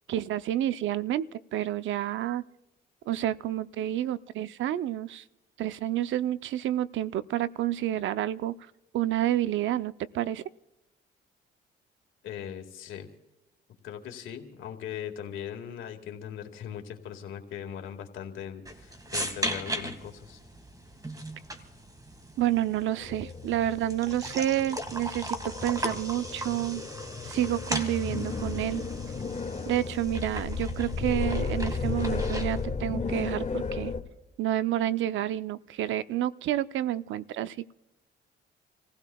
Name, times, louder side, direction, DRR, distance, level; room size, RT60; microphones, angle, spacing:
voice 1, 0.1-2.4 3.1-5.2 5.6-8.6 8.9-10.4 22.4-26.8 27.2-28.8 29.7-33.9 34.4-37.7, right 12 dB, 75° right, 14 dB, 0.6 m, -29 dB
voice 2, 12.2-13.1 13.8-20.4, left 9 dB, 85° left, 4 dB, 1.9 m, -39 dB
sound 1, 18.6-32.6, right 1 dB, 20° right, 1.8 m, -38 dB
sound 2, 23.0-34.0, left 5 dB, 35° left, 1.9 m, -34 dB
28.5 x 16.0 x 2.3 m, 1.0 s
cardioid pair, 90°, 20 cm